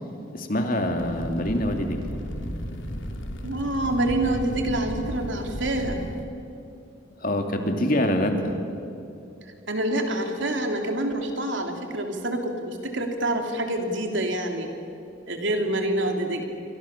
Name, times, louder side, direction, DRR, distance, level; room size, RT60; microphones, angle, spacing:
voice 1, 0.3-2.2 7.2-8.6, left 1 dB, 45° left, 4 dB, 2.6 m, -25 dB
Fire, 1.0-6.3, equal, 75° left, 2.7 m, -34 dB
voice 2, 3.4-6.0 9.5-14.7 15.3-16.4, right 1 dB, 70° right, 3 dB, 3.3 m, -27 dB
28.0 x 24.5 x 7.3 m, 2.7 s
head